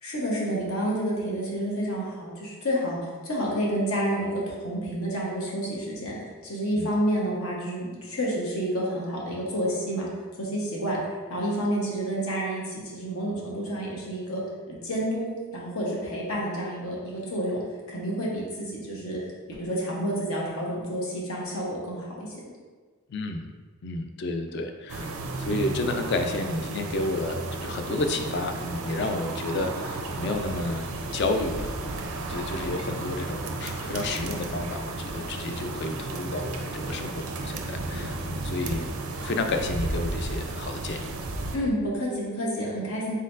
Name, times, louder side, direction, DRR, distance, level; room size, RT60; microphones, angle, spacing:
voice 1, 0.0-10.1 10.4-11.0 11.3-14.4 14.7-17.6 17.9-19.2 19.5-22.5 41.5-43.2, equal, 75° left, -4 dB, 1.1 m, -29 dB
voice 2, 23.1-23.4 23.8-41.1, left 2 dB, 50° left, 5 dB, 0.4 m, -31 dB
sound 1, 24.9-41.6, right 2 dB, 75° right, 0.5 m, -33 dB
4.2 x 4.0 x 2.6 m, 1.4 s
head